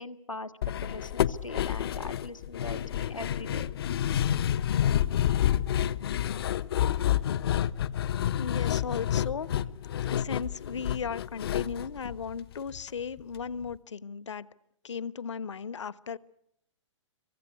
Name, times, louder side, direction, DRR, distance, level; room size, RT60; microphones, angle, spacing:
voice 1, 0.0-3.7, left 2 dB, 90° left, 10 dB, 1.8 m, -41 dB
sound 1, 0.6-12.9 13.2-13.3 13.6-13.7, left 10 dB, 50° left, 1.0 m, -29 dB
voice 2, 8.3-9.5 10.1-14.5 14.8-16.2, left 6 dB, 65° left, 17 dB, 1.2 m, -36 dB
27.0 x 24.0 x 8.4 m, 0.76 s
figure-of-eight pair, 120°, 16 cm